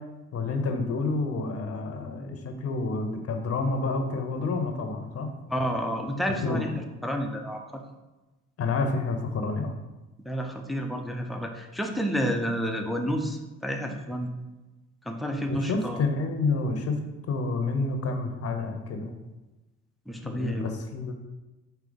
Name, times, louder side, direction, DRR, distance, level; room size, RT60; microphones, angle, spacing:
voice 1, 0.3-5.4 6.4-6.8 8.6-9.7 15.5-17.0 17.3-19.1 20.2-21.1, left 3 dB, 50° left, 5 dB, 0.7 m, -29 dB
voice 2, 5.5-6.7 7.0-7.8 10.2-14.3 15.0-16.0 20.1-20.7, equal, ahead, 2 dB, 0.5 m, -30 dB
4.8 x 2.7 x 3.9 m, 1.1 s
cardioid pair, 90°, 30 cm